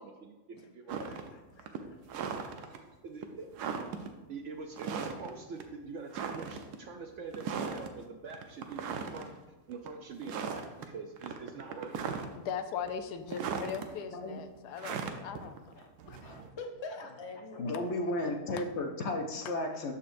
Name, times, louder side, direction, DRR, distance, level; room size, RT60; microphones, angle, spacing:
voice 1, 0.0-0.4 0.7-1.2 3.0-3.5 4.3-9.3 9.7-12.2, right 4 dB, 65° right, 4 dB, 0.7 m, -44 dB
voice 2, 0.5-2.2 16.6-18.2, left 3 dB, 35° left, 2 dB, 0.4 m, -46 dB
sound 1, 0.9-1.3 1.6-2.8 3.2-3.3 3.5-4.1 4.7-5.3 5.6-5.7 6.1-6.8 7.3-7.9 8.3-9.3 9.7-9.9 10.2-10.9 11.2-12.5 12.9-13.8 14.8-16.5, right 6 dB, 90° right, 1.2 m, -37 dB
voice 3, 12.4-15.7 16.1-16.2, left 7 dB, 85° left, 9 dB, 1.2 m, -39 dB
voice 4, 15.1-15.5 15.8-15.9 17.6-19.9, left 2 dB, 60° left, 3 dB, 0.8 m, -34 dB
12.5 x 4.2 x 2.6 m, 1.2 s
omnidirectional pair, 1.7 m